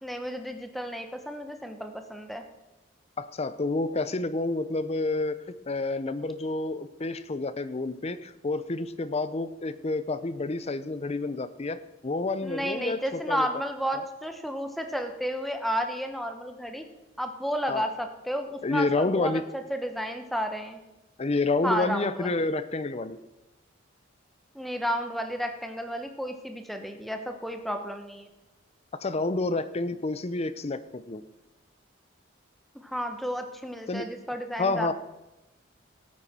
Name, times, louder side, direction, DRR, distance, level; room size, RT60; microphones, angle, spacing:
voice 1, 0.0-2.4 12.4-16.8 17.2-20.8 21.6-22.3 24.5-28.3 32.7-34.9, equal, ahead, 5 dB, 1.0 m, -32 dB
voice 2, 3.2-13.5 13.9-14.0 17.7-17.8 18.6-19.4 21.2-23.2 29.0-31.2 33.9-34.1 34.6-34.9, left 2 dB, 35° left, 14 dB, 0.6 m, -29 dB
17.5 x 9.0 x 4.3 m, 0.99 s
head